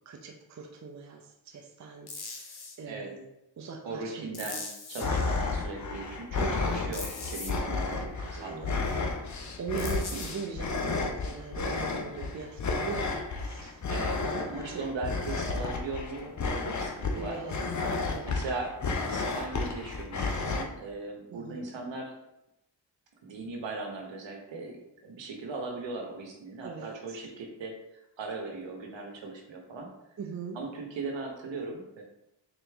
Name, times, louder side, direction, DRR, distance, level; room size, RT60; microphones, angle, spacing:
voice 1, 0.1-3.2 3.6-4.5 6.3-7.0 8.2-8.8 9.3-13.9 14.2-14.8 17.1-18.3 21.3-21.7 26.6-27.2 30.2-30.6, right 5 dB, 40° right, 2 dB, 0.6 m, -41 dB
sound 1, 2.1-2.8 4.3-5.1 6.9-7.5 9.8-10.3, left 4 dB, 55° left, 1.0 m, -40 dB
voice 2, 3.8-8.1 8.4-8.8 13.9-14.2 14.5-17.4 18.3-18.7 19.0-22.1 23.2-24.8 25.0-27.7 28.2-29.9 30.5-32.0, right 3 dB, 70° right, 1 dB, 1.0 m, -38 dB
sound 2, 5.0-20.6, left 3 dB, 40° left, 0.7 m, -32 dB
3.9 x 3.0 x 3.5 m, 0.86 s
cardioid pair, 55°, 45 cm